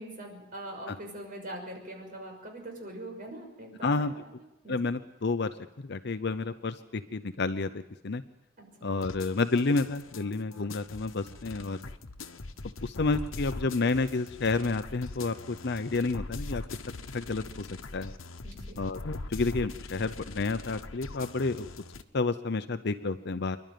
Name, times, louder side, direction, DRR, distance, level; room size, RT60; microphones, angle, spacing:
voice 1, 0.0-4.3 4.6-4.8 8.8-8.9 18.4-18.8, right 1 dB, 45° right, 2 dB, 6.2 m, -42 dB
voice 2, 3.8-4.1 4.7-5.5 5.8-8.2 8.8-11.8 12.8-16.6 17.1-18.1 18.8-21.7 22.1-23.6, left 3 dB, 55° left, 11 dB, 0.7 m, -30 dB
sound 1, 9.0-22.0, left 3 dB, 85° left, 1.1 m, -42 dB
27.0 x 11.5 x 9.3 m, 0.94 s
head